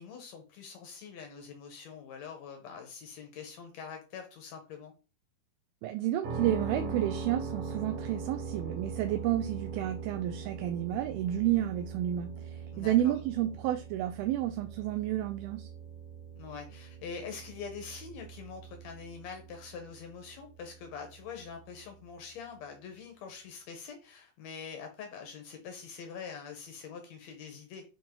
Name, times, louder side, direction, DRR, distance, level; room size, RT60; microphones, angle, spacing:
voice 1, 0.0-4.9 12.7-13.1 16.3-27.8, left 6 dB, 85° left, 1.5 m, -44 dB
voice 2, 5.8-15.7, right 12 dB, 80° right, 2.2 m, -31 dB
sound 1, 6.2-22.1, right 5 dB, 65° right, 3.0 m, -41 dB
8.3 x 2.9 x 4.4 m
omnidirectional pair, 4.6 m